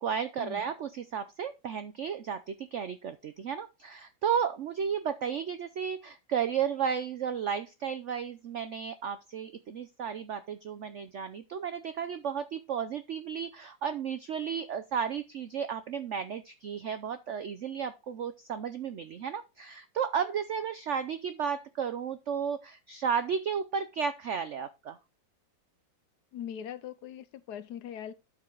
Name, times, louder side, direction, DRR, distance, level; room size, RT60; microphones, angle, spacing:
voice 1, 0.0-25.0, right 7 dB, 85° right, 0.6 m, -33 dB
voice 2, 26.3-28.1, left 9 dB, 70° left, 1.1 m, -41 dB
12.5 x 4.6 x 3.8 m
omnidirectional pair, 2.0 m